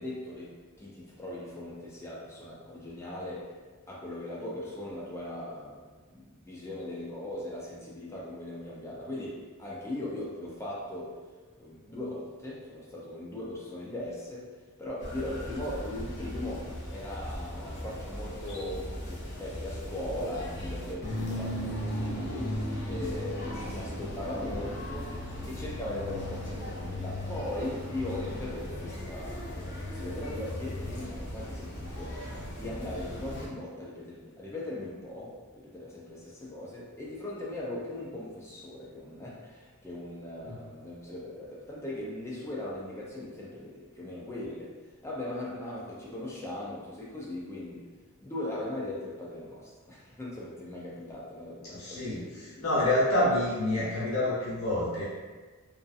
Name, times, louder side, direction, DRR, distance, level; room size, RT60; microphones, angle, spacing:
voice 1, 0.0-3.5 3.9-5.8 6.1-11.1 11.6-32.2 32.5-44.7 45.0-47.9 48.2-52.6, left 1 dB, 10° left, -5 dB, 0.3 m, -39 dB
sound 1, 15.0-33.5, left 1 dB, 55° left, 0.6 m, -37 dB
voice 2, 51.6-55.0, left 1 dB, 70° left, -8 dB, 1.0 m, -28 dB
2.6 x 2.4 x 2.3 m, 1.4 s
head